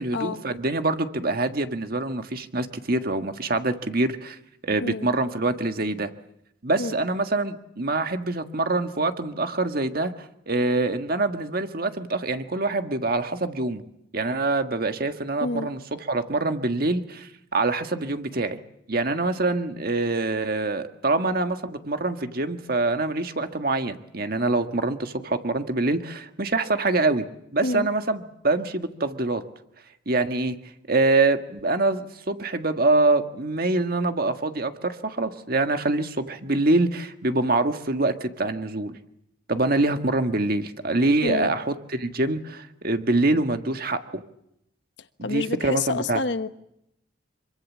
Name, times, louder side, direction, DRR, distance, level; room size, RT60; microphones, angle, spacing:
voice 1, 0.0-4.4 4.6-6.1 6.6-10.1 10.5-13.8 14.1-15.8 16.1-18.6 18.9-27.2 27.5-29.4 30.0-30.6 30.9-38.9 39.5-44.2 45.2-46.2, right 2 dB, 50° right, 1.6 m, -25 dB
voice 2, 4.8-5.1 6.8-7.0 15.4-15.7 27.6-27.9 41.2-41.5 45.2-46.5, left 3 dB, 65° left, 1.2 m, -28 dB
26.0 x 23.5 x 7.4 m
head